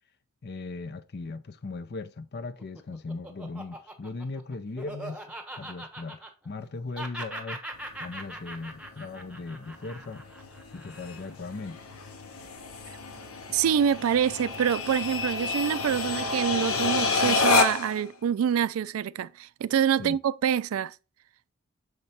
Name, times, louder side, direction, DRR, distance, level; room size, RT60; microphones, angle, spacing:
voice 1, 0.4-5.2 5.5-7.6 8.0-10.2 10.7-11.8 20.0-20.2, left 3 dB, 50° left, 0.6 m, -38 dB
Laughter, 2.4-6.7 6.9-11.4, right 1 dB, 5° right, 1.1 m, -41 dB
sound 1, 7.7-18.0, left 4 dB, 85° left, 1.1 m, -30 dB
voice 2, 13.5-20.9, right 8 dB, 70° right, 0.3 m, -26 dB
6.6 x 4.5 x 4.2 m
head